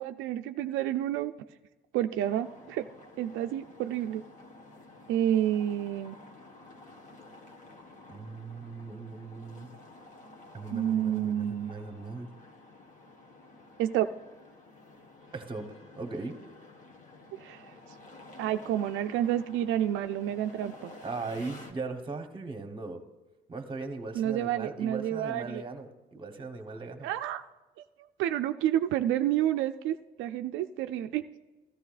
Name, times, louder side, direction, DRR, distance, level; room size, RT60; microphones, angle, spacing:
voice 1, 0.0-1.3 1.9-2.9 3.2-4.2 5.1-6.2 10.7-11.7 13.8-14.1 17.4-17.7 18.4-20.9 24.1-25.6 27.0-27.4 28.2-31.2, right 11 dB, 80° right, 8 dB, 0.4 m, -29 dB
sound 1, 2.2-21.7, left 2 dB, 40° left, 1.3 m, -51 dB
voice 2, 8.1-9.7 10.5-12.3 15.3-16.3 21.0-23.0 23.5-27.1, right 3 dB, 25° right, 7 dB, 1.1 m, -39 dB
14.0 x 13.5 x 2.5 m, 1.1 s
cardioid pair, 105°, 20 cm